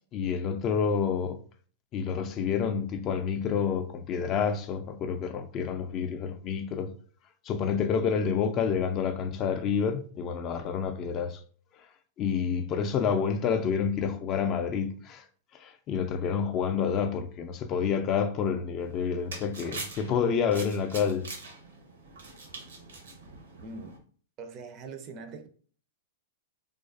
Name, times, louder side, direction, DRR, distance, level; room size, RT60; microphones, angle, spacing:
voice 1, 0.1-1.4 1.9-6.9 7.4-11.4 12.2-15.3 15.5-21.2, left 6 dB, 35° left, 0.3 m, -28 dB
sound 1, 18.8-24.0, right 3 dB, 85° right, 0.8 m, -44 dB
voice 2, 23.6-23.9 24.4-25.5, right 4 dB, 40° right, 0.4 m, -42 dB
2.4 x 2.2 x 2.4 m
hypercardioid pair, 125°, 0 cm